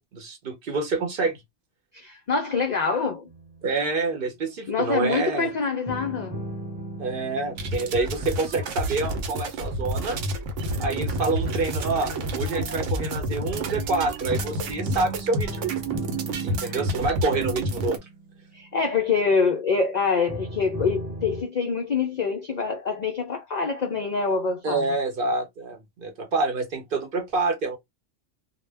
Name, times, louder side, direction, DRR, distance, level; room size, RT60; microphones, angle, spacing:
voice 1, 0.1-1.4 3.6-5.5 7.0-10.2 10.8-15.7 16.4-18.0 24.6-27.8, right 3 dB, 55° right, 0.8 m, -27 dB
voice 2, 1.9-3.3 4.7-6.4 16.6-16.7 18.5-24.9, left 5 dB, 70° left, 0.4 m, -25 dB
sound 1, 3.3-4.5 5.9-9.9 10.7-19.5 20.3-21.4, right 1 dB, 5° right, 1.0 m, -38 dB
sound 2, 7.6-18.0, right 1 dB, 80° right, 1.0 m, -29 dB
2.2 x 2.1 x 3.3 m
omnidirectional pair, 1.3 m